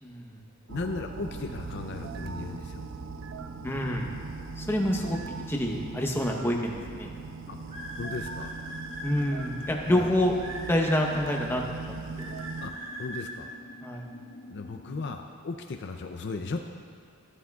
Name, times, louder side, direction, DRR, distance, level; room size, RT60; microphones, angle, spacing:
voice 1, 0.0-0.4 3.6-4.1 4.6-5.2 5.5-7.1 9.0-10.3 10.7-12.4 13.8-14.1, left 1 dB, 10° left, 0 dB, 0.9 m, -28 dB
voice 2, 0.7-2.8 7.5-7.6 8.0-8.5 9.9-10.1 12.6-12.7 13.0-13.5 14.5-16.7, left 3 dB, 55° left, 5 dB, 0.4 m, -36 dB
sound 1, 0.7-12.8, right 4 dB, 60° right, 0.4 m, -40 dB
sound 2, 1.3-15.1, equal, 85° left, 1.8 m, -48 dB
sound 3, 7.7-9.7 10.4-11.4 12.2-13.3, right 1 dB, 30° right, 2.6 m, -40 dB
13.5 x 13.0 x 2.4 m, 2.1 s
head